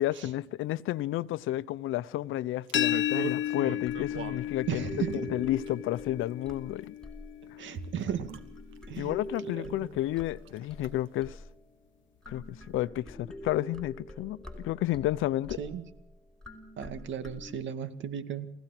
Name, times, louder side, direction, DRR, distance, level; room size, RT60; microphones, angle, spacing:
voice 1, 0.0-4.8 5.1-6.9 9.0-11.4 12.3-15.6, left 14 dB, 85° left, 0.8 m, -31 dB
sound 1, 2.7-8.5, left 11 dB, 70° left, 1.2 m, -34 dB
sound 2, 2.7-4.4 5.1-6.0 6.9-7.0 7.7-8.4 8.7-9.0 9.4-9.5 9.8-10.2 10.5-10.9 11.3-11.4, right 9 dB, 85° right, 1.8 m, -41 dB
sound 3, 3.4-7.6 8.1-11.8 12.2-17.5, equal, 5° left, 5.0 m, -45 dB
voice 2, 4.7-5.3 7.6-8.4 8.9-9.2 9.4-9.9 15.6-15.8 16.8-18.5, right 8 dB, 70° right, 2.3 m, -35 dB
28.5 x 15.5 x 6.1 m
cardioid pair, 90°, 20 cm